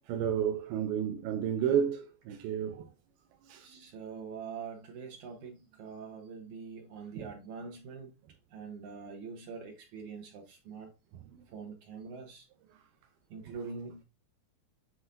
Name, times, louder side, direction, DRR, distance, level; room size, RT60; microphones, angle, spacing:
voice 1, 0.1-2.8 3.5-3.7 7.2-7.3 13.5-13.6, right 8 dB, 85° right, 2.6 m, -31 dB
voice 2, 3.6-8.1 8.5-10.9 11.5-12.5 13.3-14.0, right 5 dB, 65° right, 2.0 m, -44 dB
9.8 x 4.0 x 2.6 m
omnidirectional pair, 4.4 m